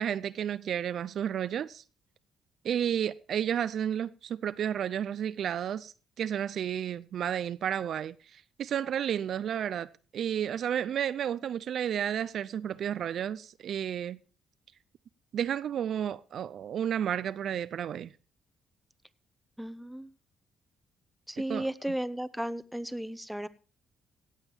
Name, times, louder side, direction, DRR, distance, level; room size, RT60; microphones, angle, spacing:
voice 1, 0.0-1.8 2.6-14.2 15.3-18.1 21.5-21.9, right 9 dB, 65° right, 0.5 m, -32 dB
voice 2, 19.6-20.1 21.3-23.5, right 1 dB, ahead, 0.9 m, -34 dB
17.5 x 7.4 x 4.4 m
supercardioid pair, 70°, 0 cm